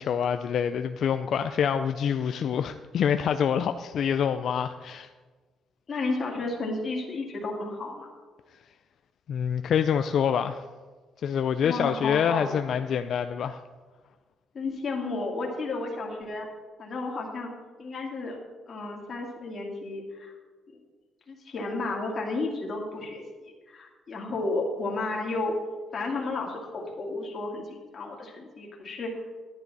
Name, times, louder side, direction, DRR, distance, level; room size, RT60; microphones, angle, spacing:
voice 1, 0.0-5.1 9.3-10.6 11.2-13.6, left 8 dB, 65° left, 9 dB, 0.4 m, -26 dB
voice 2, 5.9-8.1 11.6-12.7 14.5-16.5 16.8-17.5 17.8-18.4 18.7-20.3 20.7-20.8 21.3-25.5 25.9-29.1, left 3 dB, 45° left, -1 dB, 2.2 m, -32 dB
10.5 x 10.0 x 4.1 m, 1.4 s
cardioid pair, 90°, 0 cm